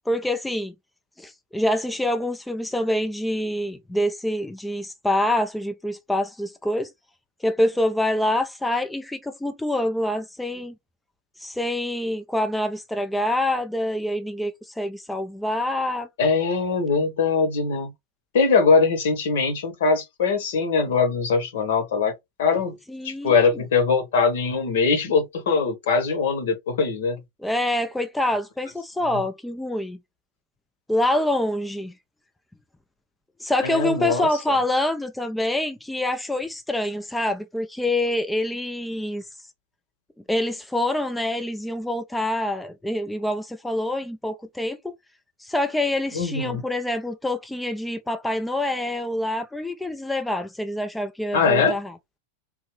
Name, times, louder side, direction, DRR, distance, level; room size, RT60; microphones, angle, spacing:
voice 1, 0.1-0.7 1.2-6.9 7.4-10.7 11.4-16.1 22.9-23.5 27.4-30.0 30.9-31.9 33.4-39.3 40.3-44.9 45.4-51.9, left 1 dB, 5° left, 0.4 m, -26 dB
voice 2, 16.2-17.9 18.3-22.1 22.4-22.8 23.0-27.2 29.1-29.2 33.6-34.3 46.1-46.6 51.3-51.8, left 4 dB, 60° left, 1.1 m, -21 dB
3.5 x 2.7 x 3.1 m
figure-of-eight pair, 90°, 0 cm